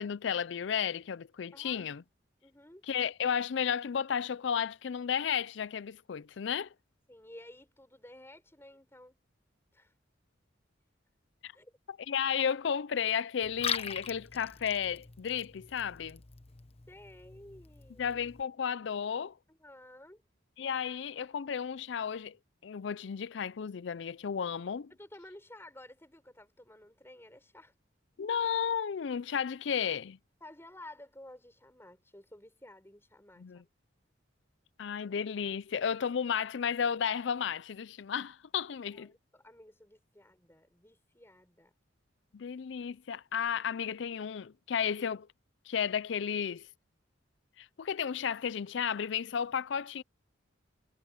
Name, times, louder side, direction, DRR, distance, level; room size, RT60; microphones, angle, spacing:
voice 1, 0.0-2.0 2.9-6.7 11.4-11.5 12.1-16.2 18.0-19.4 20.6-22.4 22.6-24.9 28.2-30.2 33.4-33.6 34.8-39.1 42.3-45.3 45.7-46.7 47.6-50.0, left 7 dB, 65° left, 0.4 m, -33 dB
voice 2, 1.5-1.8 2.4-2.8 7.1-9.2 9.7-9.9 11.5-11.7 16.9-18.2 19.5-20.2 24.9-27.7 30.4-33.6 38.9-41.7, left 1 dB, 15° left, 5.3 m, -53 dB
Liquid, 13.4-18.4, left 7 dB, 30° left, 1.0 m, -41 dB
head